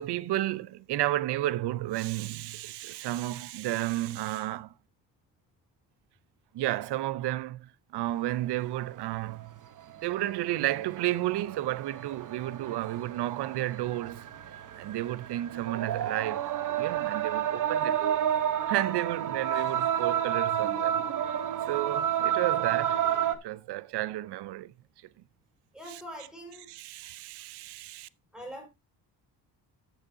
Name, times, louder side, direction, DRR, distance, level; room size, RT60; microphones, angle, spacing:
voice 1, 0.0-4.7 6.5-9.6 10.0-18.2 18.7-21.0 21.7-23.0 23.4-24.7 26.7-28.1, right 15 dB, 70° right, 0.7 m, -32 dB
sound 1, 8.9-9.0 9.8-10.0 10.5-23.3, right 10 dB, 45° right, 1.1 m, -30 dB
voice 2, 25.7-26.7 28.3-28.7, equal, ahead, 5.1 m, -43 dB
14.0 x 6.5 x 2.7 m
cardioid pair, 110°, 42 cm